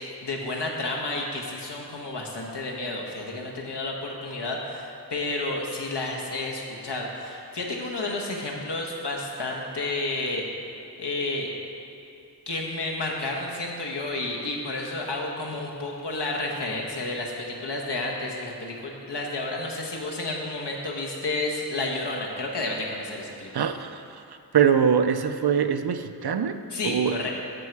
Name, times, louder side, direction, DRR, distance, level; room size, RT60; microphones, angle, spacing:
voice 1, 0.0-10.5 11.0-11.5 12.5-23.5 26.7-27.3, left 2 dB, 90° left, -1 dB, 1.3 m, -31 dB
voice 2, 23.5-24.2 24.5-26.6 26.8-27.2, right 7 dB, 70° right, 9 dB, 0.5 m, -23 dB
13.0 x 5.5 x 4.7 m, 2.7 s
wide cardioid pair, 65°, 40 cm